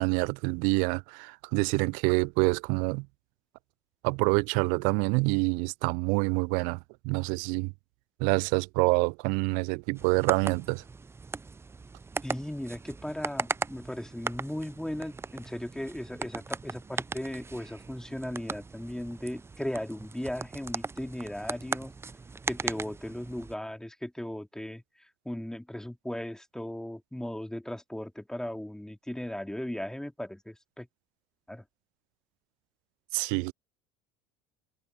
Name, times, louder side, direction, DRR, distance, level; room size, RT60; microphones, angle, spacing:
voice 1, 0.0-3.1 4.0-6.8 7.0-7.7 8.2-10.8 33.1-33.5, right 33 dB, 60° right, 0.5 m, -26 dB
sound 1, 10.0-23.5, right 4 dB, 15° right, 0.7 m, -38 dB
voice 2, 12.2-21.9 22.5-30.9 31.5-31.6, left 1 dB, 5° left, 3.4 m, -37 dB
figure-of-eight pair, 70°, 16 cm